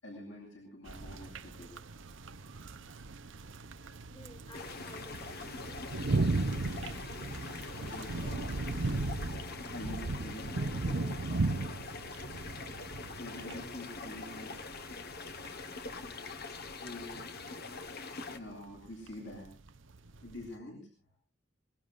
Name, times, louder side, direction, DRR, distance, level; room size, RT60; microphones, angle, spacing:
voice 1, 0.0-1.7 7.0-9.0 9.4-11.7 13.2-14.6 16.8-17.2 17.8-19.5 20.2-20.9, left 1 dB, 70° left, 0 dB, 7.7 m, -47 dB
sound 1, 0.9-20.6, right 3 dB, 70° right, 0.8 m, -37 dB
voice 2, 4.1-6.2, left 1 dB, 30° left, 4 dB, 2.4 m, -54 dB
sound 2, 4.5-18.4, left 4 dB, 55° left, 1.4 m, -44 dB
25.5 x 21.5 x 2.6 m, 0.38 s
head